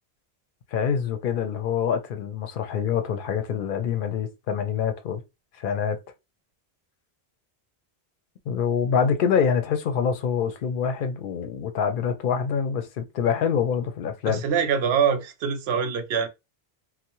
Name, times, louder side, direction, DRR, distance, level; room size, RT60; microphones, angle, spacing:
voice 1, 0.7-5.2 5.6-6.0 8.5-14.4, left 7 dB, 60° left, 0.6 m, -25 dB
voice 2, 14.3-16.3, right 7 dB, 80° right, 0.8 m, -24 dB
2.7 x 2.0 x 2.9 m
omnidirectional pair, 1.1 m